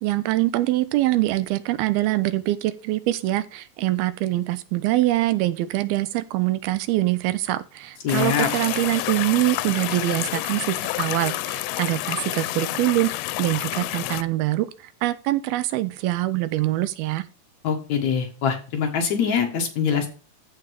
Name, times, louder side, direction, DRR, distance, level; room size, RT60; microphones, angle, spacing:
voice 1, 0.0-13.1 13.4-14.7 15.0-17.2, right 16 dB, 85° right, 14 dB, 2.6 m, -24 dB
voice 2, 8.0-8.5 17.6-20.1, left 7 dB, 55° left, 3 dB, 2.4 m, -23 dB
sound 1, 8.1-14.2, left 17 dB, 90° left, 2.5 m, -29 dB
14.5 x 5.1 x 3.5 m, 0.36 s
omnidirectional pair, 4.3 m